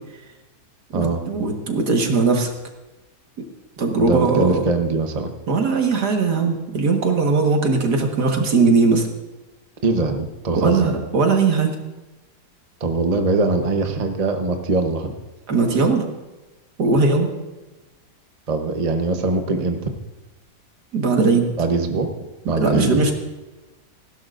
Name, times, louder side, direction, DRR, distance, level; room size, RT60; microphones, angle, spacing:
voice 1, 0.9-2.5 3.8-4.7 5.5-9.1 10.5-11.7 15.5-16.1 16.8-17.3 20.9-21.5 22.6-23.1, right 4 dB, 70° right, 2 dB, 2.1 m, -19 dB
voice 2, 4.0-5.3 9.8-10.9 12.8-15.1 18.5-19.9 21.6-22.1 22.5-23.1, right 3 dB, 30° right, 5 dB, 0.9 m, -22 dB
18.5 x 16.0 x 2.6 m, 1.1 s
omnidirectional pair, 1.8 m